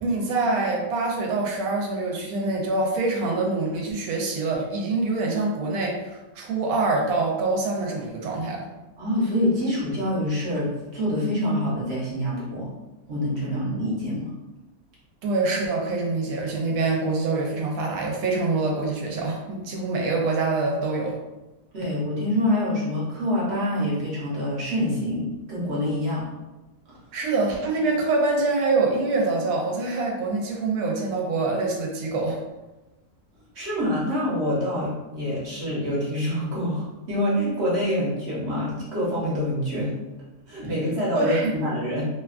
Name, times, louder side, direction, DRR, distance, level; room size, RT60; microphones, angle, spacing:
voice 1, 0.0-8.7 15.2-21.2 27.1-32.4 41.1-41.5, right 3 dB, 80° right, 0 dB, 1.0 m, -25 dB
voice 2, 9.0-12.7 13.1-14.3 21.7-26.3 26.9-27.0 33.5-39.9 40.5-42.0, equal, 55° right, -6 dB, 1.0 m, -26 dB
2.8 x 2.2 x 2.3 m, 1.1 s
omnidirectional pair, 1.5 m